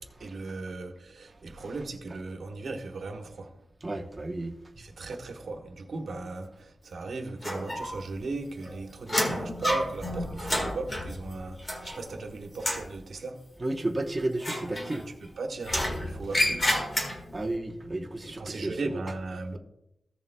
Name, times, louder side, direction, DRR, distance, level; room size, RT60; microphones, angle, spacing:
voice 1, 0.2-3.6 4.8-13.5 15.2-16.8 18.2-19.6, right 3 dB, 60° right, 1.3 m, -37 dB
voice 2, 3.8-4.6 13.6-15.1 16.2-16.4 17.3-19.2, right 2 dB, 20° right, 0.9 m, -33 dB
sound 1, 7.4-8.2 8.5-12.2 12.5-12.9 14.4-15.3 15.6-17.4, left 1 dB, 25° left, 1.6 m, -30 dB
15.5 x 7.0 x 2.2 m
wide cardioid pair, 155°, 0 cm